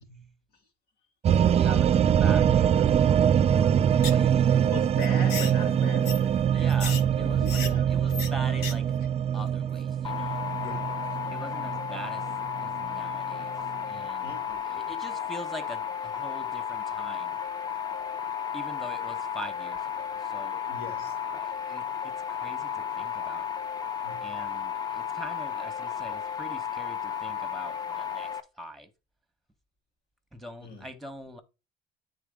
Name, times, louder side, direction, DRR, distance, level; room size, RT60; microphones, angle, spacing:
sound 1, 1.2-13.8, right 9 dB, 40° right, 0.4 m, -24 dB
voice 1, 1.5-3.2 3.5-4.7 6.5-8.9 9.3-10.4 11.3-12.3 12.6-14.4 14.6-17.4 18.5-20.6 21.3-23.5 24.2-28.9 30.3-31.4, equal, ahead, 1.4 m, -43 dB
sound 2, 4.0-4.3 4.5-4.6 5.0-5.5 6.0-6.2 6.7-7.0 7.5-7.7 8.1-8.3 8.6-8.7 9.0-9.1, left 5 dB, 85° left, 1.3 m, -34 dB
voice 2, 4.6-6.7 7.0-8.3 10.5-11.1 14.2-14.8 20.7-21.2 24.0-24.3 30.6-30.9, left 1 dB, 70° left, 2.5 m, -40 dB
sound 3, 10.0-28.4, left 8 dB, 25° left, 0.9 m, -33 dB
8.9 x 3.9 x 3.7 m
cardioid pair, 110°, 17 cm